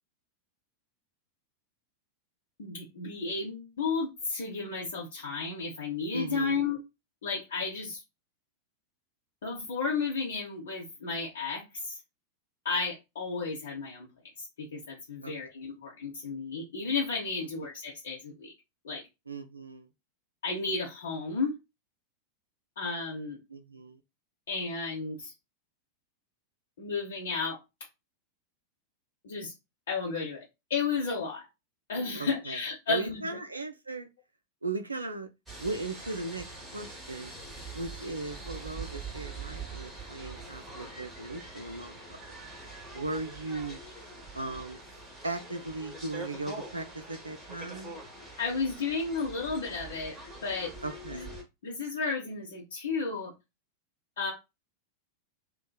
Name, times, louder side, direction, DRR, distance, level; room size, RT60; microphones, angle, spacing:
voice 1, 2.6-6.8 7.2-8.0 9.4-12.0 12.6-14.1 14.6-18.5 18.8-19.0 20.4-21.5 22.8-23.4 24.5-25.3 26.8-27.6 29.2-29.5 29.9-30.4 30.7-31.5 31.9-33.4 48.4-50.1 50.4-50.7 51.1-51.3 51.6-53.3 54.2-54.3, left 4 dB, 60° left, 0.7 m, -33 dB
voice 2, 6.1-6.6 15.2-15.3 17.6-17.7 19.3-19.9 23.5-24.0 32.1-32.6 32.9-34.1 34.6-35.3 35.6-36.5 36.7-37.3 37.7-42.0 42.9-43.8 44.3-44.8 45.2-47.9 50.8-51.3, right 2 dB, 80° right, 0.3 m, -37 dB
sound 1, 35.5-51.4, right 3 dB, 10° right, 0.9 m, -44 dB
2.7 x 2.1 x 2.3 m
figure-of-eight pair, 90°, 0 cm